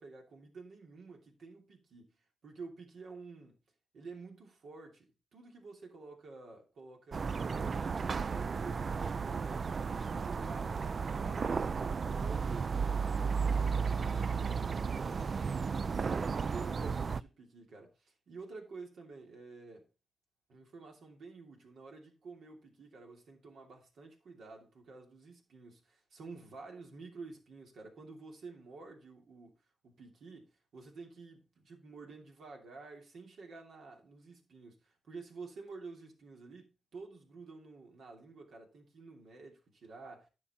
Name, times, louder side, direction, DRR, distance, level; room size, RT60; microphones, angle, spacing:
voice 1, 0.0-2.1 2.4-3.6 3.9-15.4 15.8-19.9 20.5-29.5 29.8-40.3, right 4 dB, 75° right, 2.9 m, -50 dB
sound 1, 7.1-17.2, right 5 dB, 55° right, 0.4 m, -34 dB
10.0 x 6.2 x 4.4 m
supercardioid pair, 55°, 0 cm